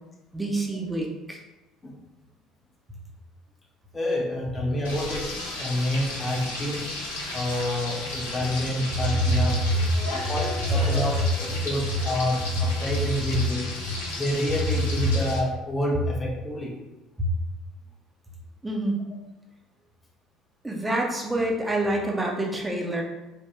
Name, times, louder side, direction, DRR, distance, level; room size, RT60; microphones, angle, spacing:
voice 1, 0.3-1.4 9.3-9.4 9.7-9.8 10.9-11.0 17.2-17.3 18.6-19.0 20.6-23.0, right 1 dB, 15° right, 0 dB, 0.7 m, -27 dB
voice 2, 3.9-6.9 7.3-9.6 10.1-13.7 14.2-16.8, left 1 dB, 20° left, -2 dB, 0.7 m, -28 dB
Frying (food), 4.8-15.4, left 2 dB, 75° left, 0.6 m, -34 dB
3.5 x 2.3 x 2.9 m, 1.0 s
figure-of-eight pair, 55°, 0 cm